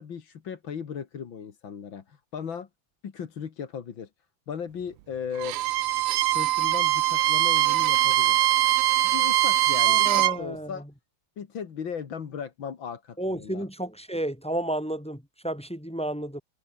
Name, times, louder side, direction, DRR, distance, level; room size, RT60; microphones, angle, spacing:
voice 1, 0.0-2.7 3.0-4.1 4.5-5.6 6.3-8.5 9.0-10.8 11.4-13.7, left 7 dB, 65° left, 2.6 m, -37 dB
Bowed string instrument, 5.4-10.4, right 16 dB, 90° right, 1.6 m, -22 dB
voice 2, 9.9-10.8 13.2-16.4, right 1 dB, 5° left, 1.6 m, -32 dB
omnidirectional pair, 2.3 m